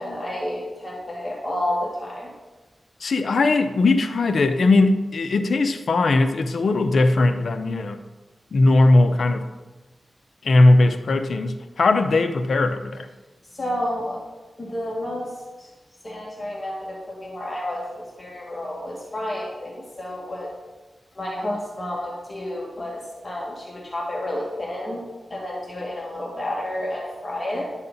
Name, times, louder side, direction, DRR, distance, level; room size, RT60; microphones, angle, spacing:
voice 1, 0.0-2.3 13.5-14.2 14.6-15.3 15.6-15.7 16.0-20.5 21.2-25.0 25.3-27.7, left 1 dB, 35° left, -2 dB, 2.0 m, -30 dB
voice 2, 3.0-8.0 8.5-9.5 10.4-13.1, left 2 dB, 75° left, 8 dB, 0.8 m, -19 dB
11.5 x 7.4 x 4.1 m, 1.2 s
cardioid pair, 60°, 0 cm